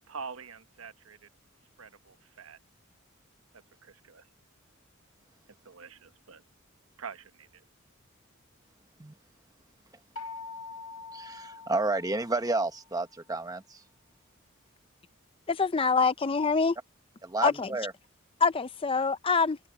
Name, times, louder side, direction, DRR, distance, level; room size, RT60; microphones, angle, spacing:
voice 1, 0.1-1.3 1.8-2.6 3.8-4.3 5.6-6.4 7.0-7.6, right 5 dB, 85° right, 1.1 m, -45 dB
sound 1, 10.2-12.9, left 4 dB, 90° left, 1.0 m, -44 dB
voice 2, 11.1-13.8 17.2-17.9, right 2 dB, 20° right, 1.3 m, -31 dB
voice 3, 15.5-16.8 17.4-17.7 18.4-19.6, left 4 dB, 25° left, 0.5 m, -25 dB
head